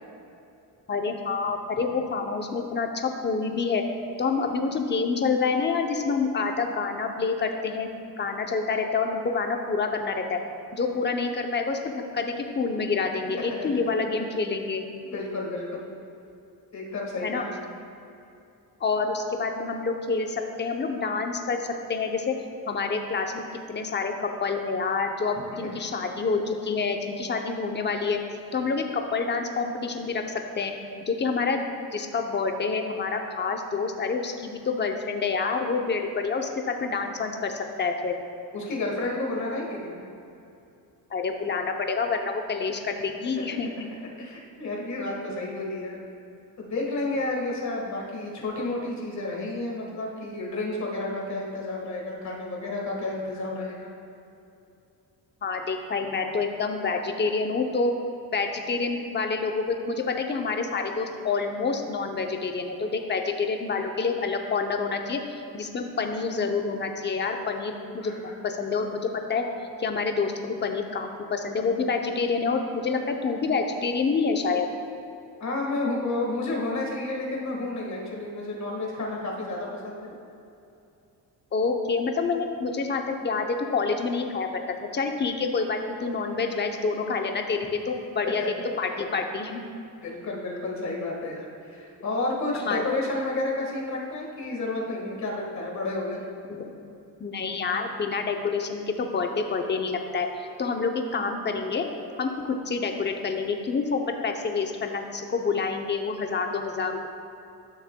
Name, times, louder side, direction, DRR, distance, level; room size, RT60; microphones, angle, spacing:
voice 1, 0.9-3.8 4.2-7.9 8.2-10.4 10.7-14.8 17.2-17.4 18.8-22.4 22.7-23.4 23.7-28.2 28.5-30.7 31.1-31.7 31.9-38.1 41.1-43.7 55.4-57.9 58.3-69.5 69.8-74.7 81.5-88.4 88.8-89.6 92.6-92.8 96.5-96.7 97.2-100.3 100.6-101.8 102.2-107.1, left 4 dB, 30° left, 4 dB, 0.7 m, -27 dB
voice 2, 15.0-15.8 16.7-17.5 38.5-40.0 43.4-43.5 44.2-46.0 46.6-53.9 68.0-68.4 75.4-80.1 88.2-88.5 90.0-96.2, left 2 dB, 45° left, -1 dB, 1.6 m, -31 dB
12.5 x 6.5 x 2.2 m, 2.7 s
cardioid pair, 120°, 38 cm